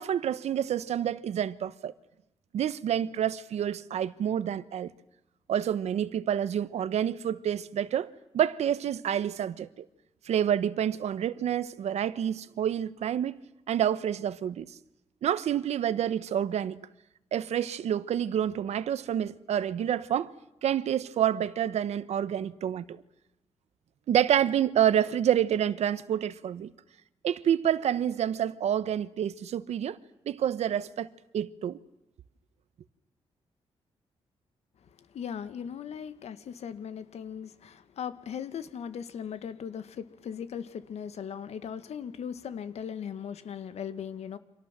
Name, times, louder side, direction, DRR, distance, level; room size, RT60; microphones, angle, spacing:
voice 1, 0.0-1.9 2.5-4.9 5.5-8.1 8.3-9.8 10.3-13.4 13.7-14.7 15.2-16.8 17.3-20.3 20.6-23.0 24.1-26.7 27.2-30.0 30.3-31.1 31.3-31.8, right 10 dB, 85° right, 1.2 m, -28 dB
voice 2, 35.0-44.4, left 8 dB, 80° left, 1.9 m, -38 dB
29.5 x 26.0 x 7.5 m
cardioid pair, 115°, 11 cm